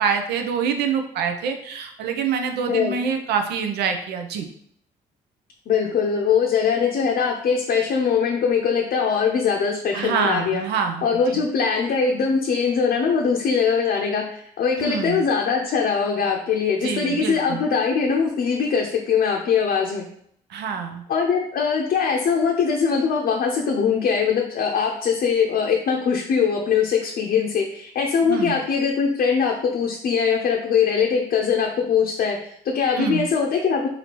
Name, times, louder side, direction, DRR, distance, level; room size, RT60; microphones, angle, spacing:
voice 1, 0.0-4.5 9.9-11.4 14.8-15.2 16.8-17.6 20.5-21.0 28.2-28.6 33.0-33.3, right 6 dB, 80° right, 5 dB, 0.5 m, -26 dB
voice 2, 5.7-10.6 11.0-20.0 21.1-33.9, left 6 dB, 60° left, 0 dB, 0.6 m, -22 dB
4.2 x 2.7 x 2.9 m, 0.66 s
supercardioid pair, 55°, 17 cm